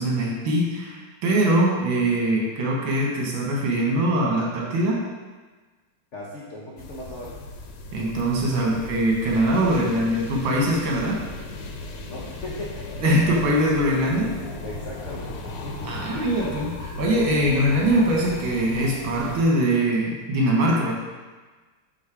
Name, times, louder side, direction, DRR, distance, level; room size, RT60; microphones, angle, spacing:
voice 1, 0.0-5.0 7.9-11.2 13.0-14.4 15.9-20.9, right 1 dB, 70° right, -2 dB, 1.8 m, -22 dB
voice 2, 6.1-7.4 12.0-12.9 14.6-16.2, left 1 dB, 60° left, -5 dB, 0.7 m, -38 dB
sound 1, 6.8-19.4, left 2 dB, 85° left, 1.5 m, -36 dB
6.4 x 3.7 x 4.6 m, 1.3 s
omnidirectional pair, 2.4 m